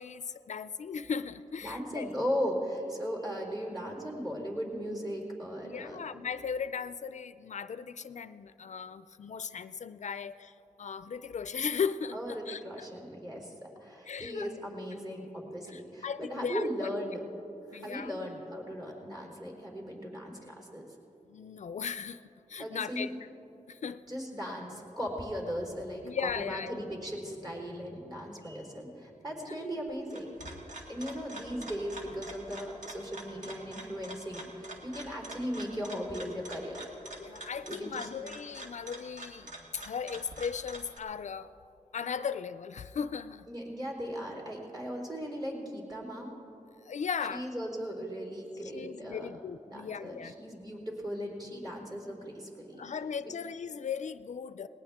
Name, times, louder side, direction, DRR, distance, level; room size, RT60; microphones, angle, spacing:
voice 1, 0.0-2.1 5.6-10.5 10.8-12.6 14.0-14.5 15.7-16.9 17.7-18.1 21.3-22.2 22.5-23.1 23.7-24.0 26.0-26.8 29.4-29.6 37.2-41.5 41.9-43.5 46.8-47.5 48.7-50.3 52.8-54.7, left 6 dB, 65° left, 13 dB, 0.4 m, -37 dB
voice 2, 1.6-6.0 12.1-17.2 17.7-20.9 22.6-23.1 24.1-30.3 30.9-36.8 37.7-38.1 43.5-46.4 47.3-49.3 49.7-52.8, equal, 30° right, -1 dB, 4.2 m, -37 dB
sound 1, 29.9-41.0, right 1 dB, 75° right, 2.0 m, -46 dB
19.0 x 19.0 x 3.6 m, 2.9 s
wide cardioid pair, 70°, 13 cm